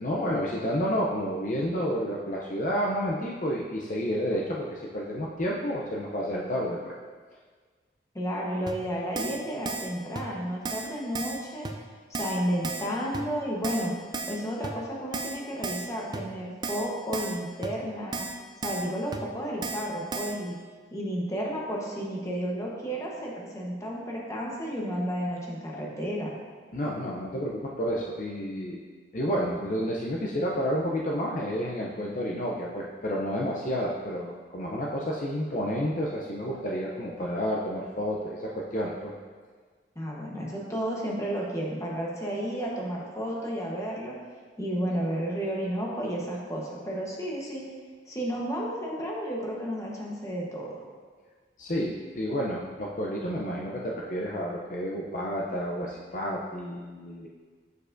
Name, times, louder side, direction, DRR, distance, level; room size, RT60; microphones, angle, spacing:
voice 1, 0.0-6.9 26.7-28.8 29.1-39.1 51.6-57.3, equal, 45° left, -3 dB, 0.5 m, -30 dB
voice 2, 8.1-11.7 12.1-14.0 14.3-18.3 18.6-20.6 20.9-26.4 39.9-44.2 44.6-47.7 48.1-50.8, equal, 15° left, -3 dB, 1.0 m, -32 dB
Keyboard (musical), 8.7-8.8 9.2-9.4 9.7-9.9 10.2-10.3 10.7-10.9 11.2-11.4 11.7-11.8 12.1-12.4 12.6-12.9 13.1-13.2 13.6-13.9 14.1-14.4 14.6-14.7 15.1-15.4 15.6-15.9 16.1-16.2 16.6-16.9 17.1-17.4 17.6-17.7 18.1-18.4 18.6-18.9 19.1-19.2 19.6-19.9 20.1-20.3, right 3 dB, 25° right, 0.4 m, -33 dB
7.1 x 6.6 x 2.6 m, 1.5 s
head